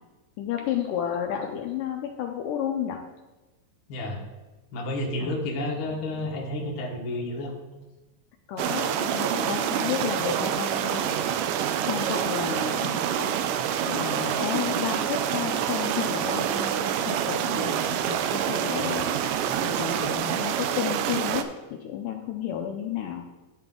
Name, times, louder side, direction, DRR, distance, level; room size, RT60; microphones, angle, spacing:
voice 1, 0.4-3.0 5.2-5.4 8.5-11.3 11.9-13.3 13.9-19.1 19.6-23.2, left 9 dB, 80° left, 3 dB, 2.1 m, -32 dB
voice 2, 4.7-7.5, left 1 dB, 55° left, -1 dB, 1.5 m, -30 dB
sound 1, 8.6-21.4, right 9 dB, 80° right, 2.0 m, -27 dB
11.5 x 5.7 x 3.7 m, 1.1 s
omnidirectional pair, 4.1 m